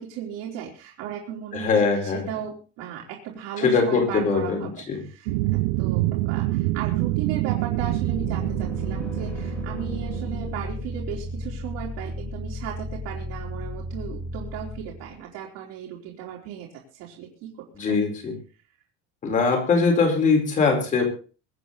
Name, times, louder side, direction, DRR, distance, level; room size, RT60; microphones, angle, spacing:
voice 1, 0.0-4.7 5.0-16.7 16.9-17.5 17.9-18.1, right 9 dB, 55° right, -3 dB, 3.7 m, -36 dB
voice 2, 1.5-2.2 3.6-5.0 17.7-18.4 19.2-21.0, left 4 dB, 25° left, 3 dB, 4.5 m, -22 dB
sound 1, 5.3-10.8, right 18 dB, 70° right, 0.8 m, -26 dB
sound 2, 7.7-15.2, left 1 dB, 5° left, 4.1 m, -34 dB
24.0 x 9.2 x 4.1 m, 0.37 s
cardioid pair, 180°, 32 cm